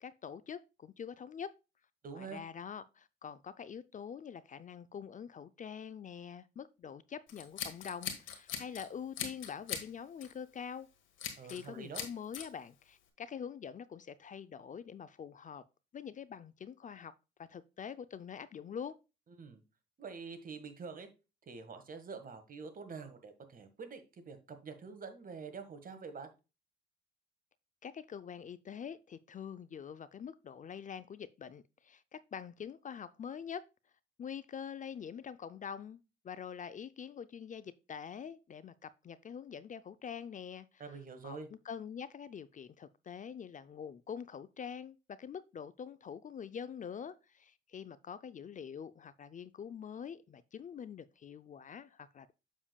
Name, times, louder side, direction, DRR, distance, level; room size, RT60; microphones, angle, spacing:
voice 1, 0.0-1.5 2.1-10.9 11.4-15.6 15.9-17.1 17.5-19.0 27.8-33.6 34.2-40.8 41.2-52.3, left 7 dB, 40° left, 0.5 m, -45 dB
voice 2, 2.0-2.4 11.4-12.1 19.4-19.6 20.0-21.1 21.5-26.3 40.8-41.5, right 5 dB, 45° right, 1.6 m, -46 dB
Scissors, 7.3-8.9 9.2-9.9 10.2-10.4 11.2-11.7 11.9-12.5, left 8 dB, 75° left, 1.6 m, -40 dB
7.3 x 7.0 x 2.3 m
cardioid pair, 90°, 20 cm